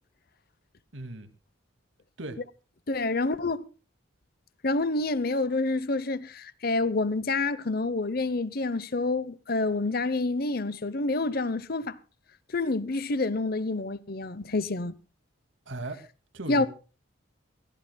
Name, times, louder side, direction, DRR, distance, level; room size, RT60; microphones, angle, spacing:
voice 1, 0.9-1.3 2.2-2.4 15.7-16.0 16.3-16.7, right 2 dB, 70° right, 2.2 m, -37 dB
voice 2, 2.9-3.6 4.6-12.0 12.5-14.9 16.5-16.7, left 3 dB, 45° left, 0.8 m, -28 dB
23.0 x 15.5 x 2.3 m
head